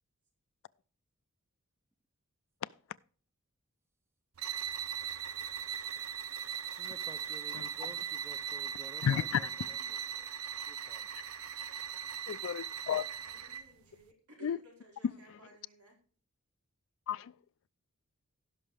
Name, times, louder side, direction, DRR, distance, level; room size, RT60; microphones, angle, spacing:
sound 1, 4.3-13.7, right 8 dB, 70° right, 0.7 m, -39 dB
voice 1, 6.7-10.3 10.6-11.4, right 1 dB, 10° right, 0.5 m, -54 dB
voice 2, 9.0-9.4 12.3-13.0 14.4-14.6 15.3-15.4 17.1-17.3, left 9 dB, 60° left, 0.3 m, -32 dB
voice 3, 13.2-16.0, right 2 dB, 85° right, 4.9 m, -57 dB
16.5 x 6.0 x 3.4 m
head